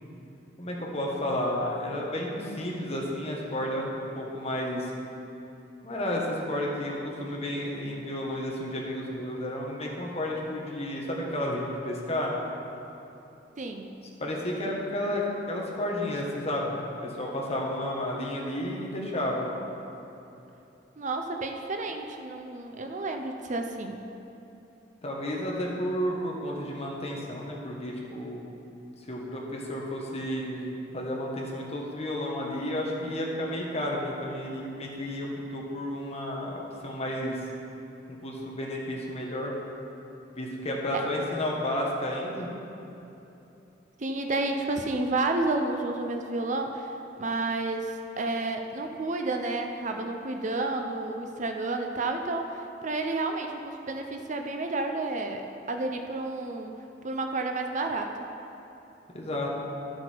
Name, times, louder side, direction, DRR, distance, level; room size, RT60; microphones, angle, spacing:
voice 1, 0.6-4.9 5.8-12.3 14.2-19.5 25.0-28.4 29.1-37.5 38.1-39.5 40.3-42.5 59.1-59.5, left 1 dB, 35° left, -3 dB, 1.6 m, -32 dB
voice 2, 13.6-13.9 21.0-24.0 44.0-56.7 57.0-58.1, right 2 dB, 45° right, 4 dB, 0.6 m, -31 dB
12.0 x 7.9 x 4.6 m, 2.9 s
head